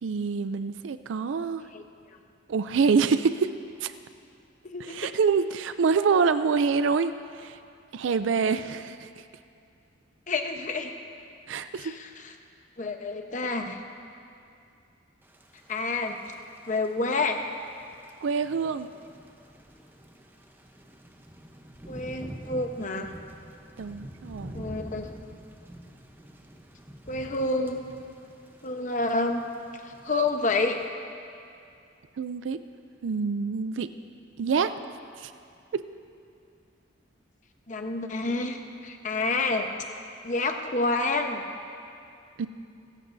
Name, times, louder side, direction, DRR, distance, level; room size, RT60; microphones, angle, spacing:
voice 1, 0.0-1.6 2.5-3.5 3.8-3.9 4.8-7.6 7.9-9.2 11.5-11.9 18.2-18.9 23.8-24.6 32.2-32.6 33.0-33.9 34.4-34.7 35.2-35.3 35.7-35.8 42.4-42.5, right 5 dB, 85° right, 11 dB, 0.4 m, -26 dB
voice 2, 10.3-10.9 11.8-12.3 12.8-13.8 15.7-16.2 16.7-17.4 21.9-23.1 24.5-25.1 27.1-27.8 28.6-29.5 30.0-30.8 37.7-39.7 40.2-41.4, left 3 dB, 40° left, 4 dB, 1.0 m, -28 dB
Thunder / Rain, 15.2-30.9, equal, 10° right, 0.8 m, -47 dB
26.5 x 14.0 x 2.7 m, 2.5 s
head